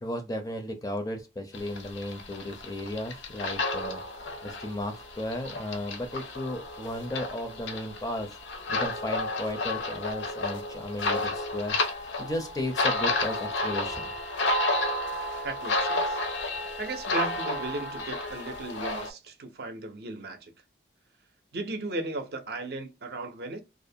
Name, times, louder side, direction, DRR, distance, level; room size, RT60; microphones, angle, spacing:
voice 1, 0.0-8.4 8.7-14.1, left 1 dB, 20° left, 0.4 m, -35 dB
sound 1, 1.5-19.1, left 2 dB, 85° left, 0.5 m, -31 dB
voice 2, 15.4-16.2 16.8-20.5 21.5-23.6, right 2 dB, 60° right, 0.5 m, -36 dB
2.4 x 2.1 x 2.6 m
head